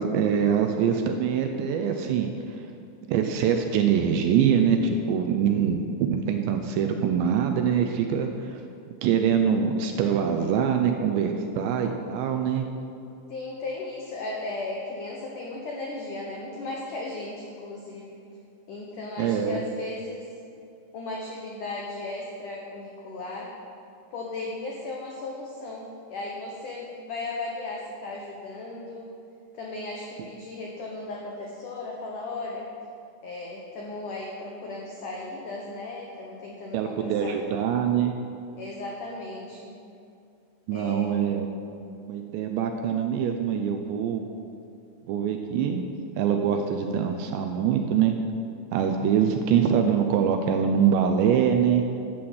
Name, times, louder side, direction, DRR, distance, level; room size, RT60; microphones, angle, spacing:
voice 1, 0.0-2.3 2.6-2.7 3.1-8.6 9.0-12.6 19.2-19.6 36.7-38.1 40.7-41.5 42.0-44.2 45.1-45.8 46.2-48.2 48.7-51.8, right 8 dB, 80° right, 5 dB, 2.7 m, -24 dB
voice 2, 13.3-18.2 18.7-20.3 20.9-23.5 24.1-29.1 29.5-32.7 33.2-37.7 38.6-39.7 40.7-41.1, left 2 dB, 85° left, -2 dB, 1.8 m, -36 dB
12.5 x 9.6 x 7.8 m, 2.5 s
omnidirectional pair, 5.7 m